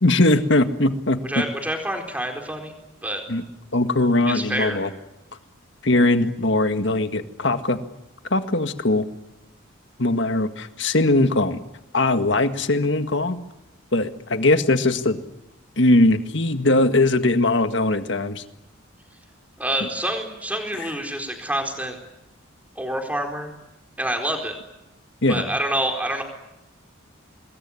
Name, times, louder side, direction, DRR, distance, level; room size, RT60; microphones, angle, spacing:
voice 1, 0.0-1.2 3.3-3.4 3.7-4.9 5.8-7.8 8.3-9.1 10.0-11.6 11.9-13.4 13.9-15.2 15.8-18.4 19.8-19.9 20.8-20.9 25.2-25.4, left 2 dB, 60° left, 8 dB, 1.8 m, -20 dB
voice 2, 1.2-2.7 3.0-3.2 4.3-4.8 19.6-22.0 22.8-23.5 24.0-24.5 25.3-26.2, right 1 dB, 5° right, 3 dB, 4.3 m, -27 dB
26.0 x 21.5 x 9.8 m, 0.93 s
head